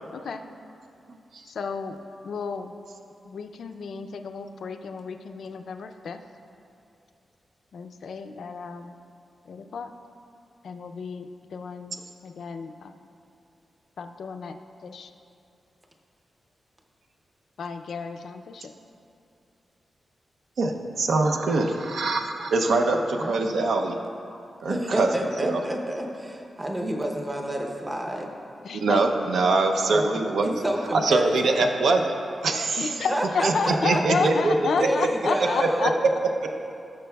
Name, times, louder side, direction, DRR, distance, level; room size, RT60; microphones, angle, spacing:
voice 1, 0.1-0.4 1.4-2.7 3.2-6.2 7.7-9.0 9.5-9.9 10.6-12.9 14.0-14.6 14.8-15.1 17.6-18.7 28.6-29.0 32.8-35.9, left 5 dB, 65° left, 7 dB, 0.4 m, -31 dB
voice 2, 20.6-24.0 24.6-25.1 25.4-25.6 28.7-30.5 30.9-32.1 32.4-32.9 33.4-35.1 35.6-35.9, right 3 dB, 75° right, 4 dB, 0.6 m, -23 dB
voice 3, 23.0-23.5 24.7-28.3 29.9-31.7 33.1-34.3 34.8-35.9, right 1 dB, 15° right, 1 dB, 0.7 m, -29 dB
15.5 x 6.6 x 2.3 m, 2.6 s
wide cardioid pair, 165°, 0 cm